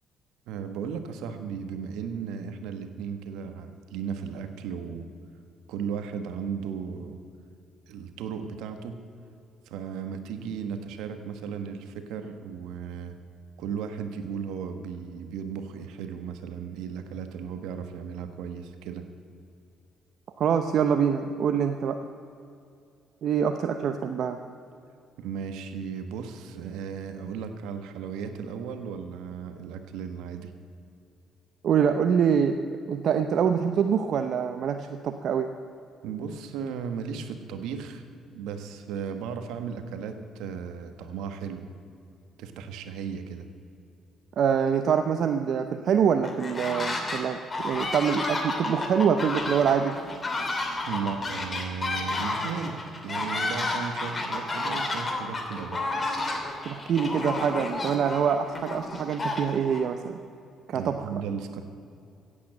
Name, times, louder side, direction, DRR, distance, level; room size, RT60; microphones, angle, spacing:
voice 1, 0.5-5.1 5.7-7.2 7.9-9.0 9.7-13.2 13.6-19.1 25.2-30.5 36.0-41.7 42.4-43.5 50.9-55.8 60.7-61.6, right 7 dB, 80° right, 8 dB, 1.2 m, -35 dB
voice 2, 20.4-22.0 23.2-24.4 31.6-32.6 32.9-35.5 44.4-47.4 47.6-50.0 56.6-60.2 60.7-61.1, right 7 dB, 65° right, 7 dB, 0.7 m, -25 dB
sound 1, 46.2-47.2 47.5-59.8, left 2 dB, 30° left, 2.9 m, -31 dB
16.0 x 8.7 x 7.6 m, 2.5 s
supercardioid pair, 65°, 0 cm